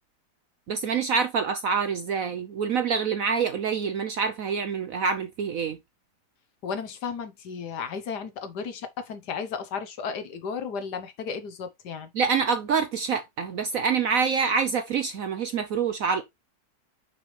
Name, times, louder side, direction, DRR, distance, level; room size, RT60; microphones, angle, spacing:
voice 1, 0.7-5.8 12.1-16.2, right 6 dB, 65° right, 0.9 m, -26 dB
voice 2, 6.6-12.1, left 6 dB, 65° left, 1.5 m, -34 dB
6.0 x 5.9 x 3.2 m
omnidirectional pair, 2.0 m